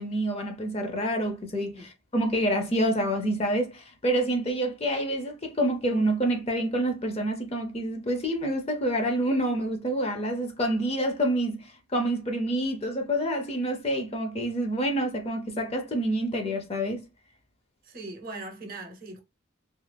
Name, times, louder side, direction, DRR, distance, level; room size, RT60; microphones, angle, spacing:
voice 1, 0.0-17.0, right 1 dB, 30° left, 0.5 m, -27 dB
voice 2, 17.8-19.2, right 2 dB, 45° right, 0.7 m, -40 dB
2.4 x 2.3 x 3.3 m
head